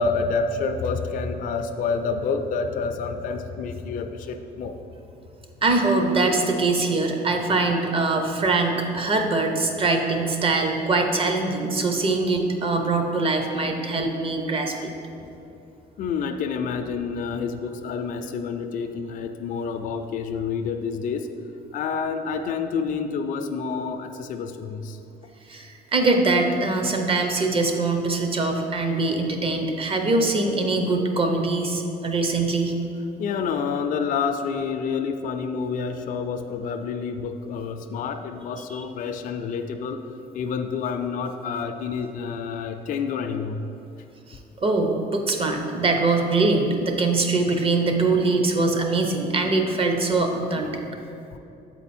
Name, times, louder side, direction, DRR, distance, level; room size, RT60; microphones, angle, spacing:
voice 1, 0.0-4.8 15.2-15.4 16.0-21.3 21.7-25.0 33.2-40.0 40.3-43.6 50.5-50.8, left 5 dB, 50° left, 6 dB, 0.4 m, -28 dB
voice 2, 5.6-14.9 25.5-32.8 38.7-38.8 44.3-50.7, right 3 dB, 35° right, 4 dB, 0.8 m, -23 dB
7.8 x 4.4 x 4.3 m, 2.8 s
cardioid pair, 110°, 17 cm